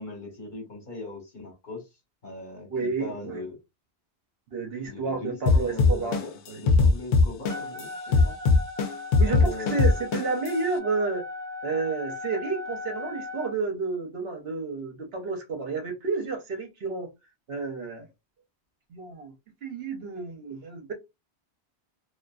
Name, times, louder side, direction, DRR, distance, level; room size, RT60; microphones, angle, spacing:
voice 1, 0.0-1.9 2.2-3.6 4.8-8.3 9.2-9.9, left 2 dB, 50° left, 1.2 m, -40 dB
voice 2, 2.7-3.4 4.5-6.2 6.5-6.6 8.1-8.2 9.2-11.3 11.6-17.1 17.5-18.1 18.9-19.3 19.6-20.9, right 4 dB, 65° right, 1.0 m, -31 dB
sound 1, 5.5-7.8 8.1-10.5, left 3 dB, 90° left, 0.9 m, -19 dB
Wind instrument woodwind instrument, 7.5-13.6, left 3 dB, 40° right, 0.3 m, -38 dB
2.5 x 2.4 x 2.3 m
omnidirectional pair, 1.1 m